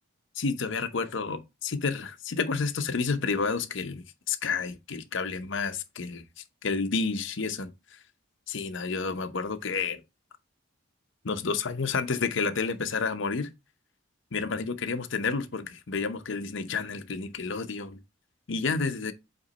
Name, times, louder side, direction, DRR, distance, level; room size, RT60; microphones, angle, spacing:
voice 1, 0.4-6.2 6.6-8.0 8.5-10.0 11.2-13.5 14.3-18.0 18.5-19.1, left 4 dB, 65° left, 0.7 m, -30 dB
7.9 x 3.0 x 4.0 m
head